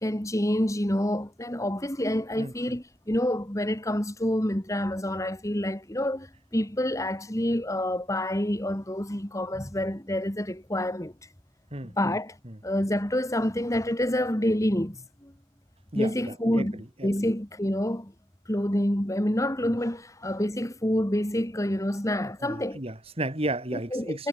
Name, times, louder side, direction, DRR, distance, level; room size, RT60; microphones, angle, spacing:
voice 1, 0.0-11.1 11.9-12.4 12.6-15.3 15.9-16.8 17.0-18.1 18.5-22.8 23.9-24.3, left 1 dB, 15° left, 2.1 m, -27 dB
voice 2, 2.4-2.8 11.7-12.2 12.4-12.6 15.9-17.1 22.4-24.3, right 1 dB, 30° right, 2.7 m, -34 dB
head